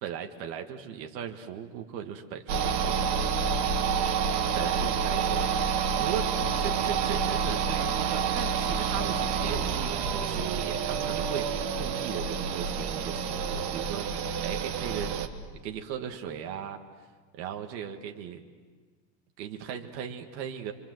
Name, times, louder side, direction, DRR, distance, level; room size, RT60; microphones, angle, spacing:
voice 1, 0.0-3.2 3.7-3.9 4.5-15.1 15.6-16.8 17.3-18.4 19.4-20.7, right 8 dB, 80° right, 4 dB, 1.9 m, -38 dB
sound 1, 2.5-15.3, right 6 dB, 35° right, 1.2 m, -28 dB
27.0 x 24.5 x 7.8 m, 1.5 s
supercardioid pair, 175°, 50 cm